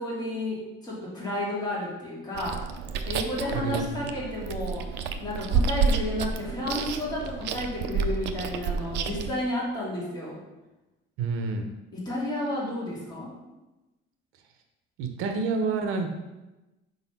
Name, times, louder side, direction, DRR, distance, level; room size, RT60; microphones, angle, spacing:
voice 1, 0.0-2.6 3.0-4.9 5.2-10.4 11.9-13.3, left 1 dB, 20° left, -6 dB, 2.2 m, -32 dB
Chewing mastication, 2.4-9.3, right 5 dB, 60° right, 0.5 m, -30 dB
voice 2, 3.5-3.8 11.2-11.7 15.0-16.1, right 4 dB, 80° right, 5 dB, 0.8 m, -28 dB
4.9 x 4.1 x 5.5 m, 1.0 s
cardioid pair, 165°, 21 cm